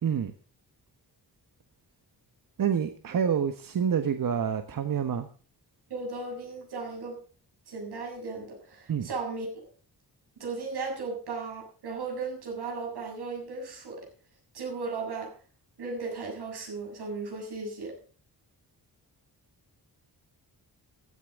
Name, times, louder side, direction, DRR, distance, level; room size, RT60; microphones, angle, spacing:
voice 1, 2.6-5.3 8.9-9.1, right 7 dB, 60° right, 1.3 m, -27 dB
voice 2, 5.9-7.2 7.7-9.7 10.4-14.1 14.5-15.3 15.8-18.0, right 4 dB, 85° right, 7.3 m, -36 dB
15.5 x 13.5 x 3.7 m
wide cardioid pair, 120°, 38 cm